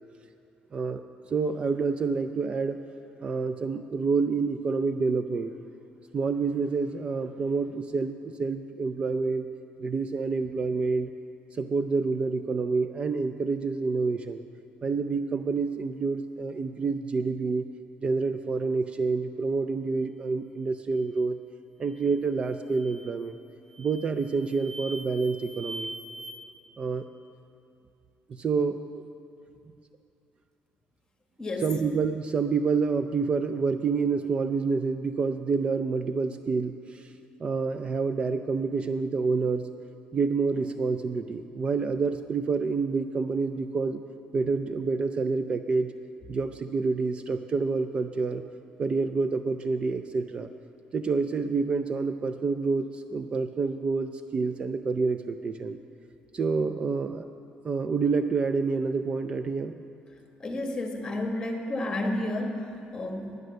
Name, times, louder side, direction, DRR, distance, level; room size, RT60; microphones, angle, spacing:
voice 1, 0.7-1.0 1.3-2.8 3.2-5.5 6.1-9.5 9.8-11.1 11.5-14.4 14.8-17.7 18.0-21.4 21.8-23.4 23.8-25.9 26.8-27.1 28.3-29.0 31.6-37.1 37.4-39.7 40.1-44.0 44.3-45.9 46.3-48.4 48.8-50.5 50.9-55.8 56.3-57.3 57.6-59.7, right 4 dB, 30° right, 9 dB, 0.4 m, -28 dB
sound 1, 21.9-22.2 22.7-23.2 23.7-26.3, right 1 dB, 60° right, 1.6 m, -42 dB
voice 2, 31.4-31.7 60.4-63.4, left 1 dB, 20° left, 3 dB, 1.3 m, -31 dB
11.0 x 9.5 x 6.4 m, 2.5 s
cardioid pair, 135°, 3 cm